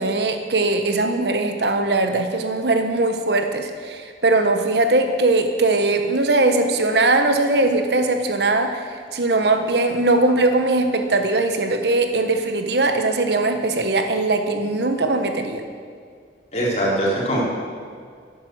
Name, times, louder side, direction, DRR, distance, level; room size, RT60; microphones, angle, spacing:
voice 1, 0.0-8.8 9.1-15.6, right 2 dB, 65° right, 6 dB, 1.2 m, -20 dB
voice 2, 16.5-17.4, right 1 dB, 35° left, -5 dB, 4.2 m, -21 dB
12.5 x 11.0 x 7.9 m, 2.1 s
head